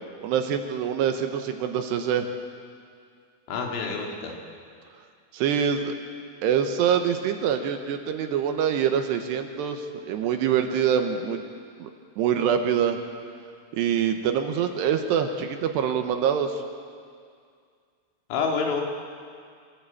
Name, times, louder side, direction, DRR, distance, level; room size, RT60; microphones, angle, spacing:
voice 1, 0.2-2.3 5.3-6.0 6.4-11.4 11.8-11.9 12.2-13.0 13.7-16.6, right 8 dB, 75° right, 6 dB, 2.9 m, -25 dB
voice 2, 3.5-4.4 18.3-18.8, left 5 dB, 90° left, 1 dB, 4.9 m, -27 dB
25.5 x 16.0 x 8.6 m, 2.2 s
omnidirectional pair, 5.5 m